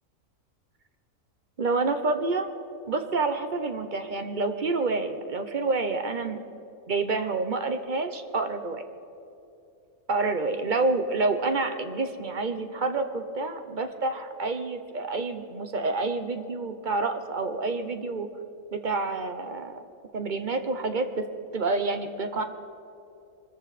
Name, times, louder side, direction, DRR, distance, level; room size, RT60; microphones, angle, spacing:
voice 1, 1.6-2.5 2.9-6.4 6.9-8.8 10.1-18.3 18.7-19.8 20.1-21.2 21.5-22.4, right 3 dB, 40° right, 8 dB, 0.8 m, -28 dB
24.0 x 14.0 x 4.2 m, 2.7 s
omnidirectional pair, 1.5 m